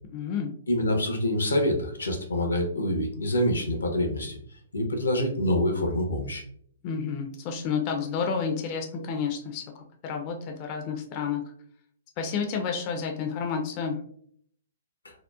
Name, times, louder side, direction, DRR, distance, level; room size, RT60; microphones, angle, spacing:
voice 1, 0.1-0.5 6.8-9.6 10.0-11.4 12.2-14.0, left 6 dB, 35° left, 3 dB, 0.4 m, -30 dB
voice 2, 0.7-4.4 4.7-6.4, left 1 dB, 85° left, 3 dB, 0.6 m, -26 dB
2.8 x 2.0 x 2.2 m, 0.64 s
hypercardioid pair, 130°, 0 cm